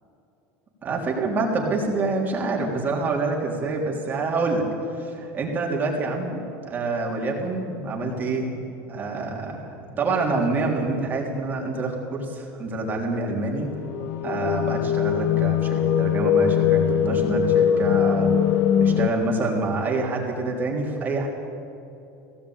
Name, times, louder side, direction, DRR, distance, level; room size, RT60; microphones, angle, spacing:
voice 1, 0.8-4.6 4.9-8.6 8.9-13.7 14.2-18.3 18.8-21.3, right 3 dB, 25° right, -1 dB, 3.4 m, -27 dB
sound 1, 13.6-19.1, left 9 dB, 55° left, 1.3 m, -21 dB
18.5 x 17.5 x 8.9 m, 2.8 s
cardioid pair, 150°, 7 cm